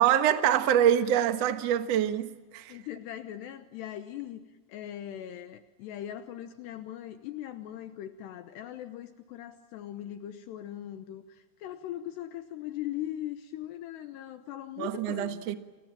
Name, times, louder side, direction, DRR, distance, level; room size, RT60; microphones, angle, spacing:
voice 1, 0.0-2.8 14.8-15.5, right 10 dB, 75° right, 1.5 m, -25 dB
voice 2, 2.7-4.4 4.7-15.4, left 12 dB, 75° left, 3.0 m, -40 dB
30.0 x 26.0 x 7.5 m
omnidirectional pair, 5.3 m